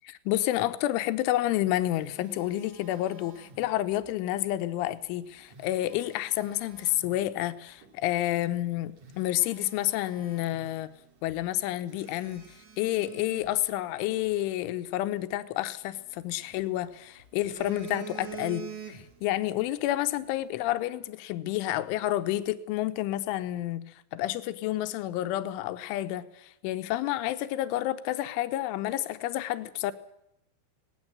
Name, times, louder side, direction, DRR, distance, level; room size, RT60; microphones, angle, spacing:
voice 1, 0.3-10.9 11.2-12.4 12.8-23.8 24.1-29.9, left 14 dB, 80° left, 11 dB, 3.3 m, -29 dB
Telephone, 1.5-4.0 5.3-7.2 7.8-8.0 8.5-8.6 9.0-11.0 11.3-11.4 11.9-14.3 15.8-16.8 17.2-19.3 19.6-19.9, right 6 dB, 45° right, 3.0 m, -46 dB
18.5 x 18.0 x 8.7 m, 0.80 s
omnidirectional pair, 5.8 m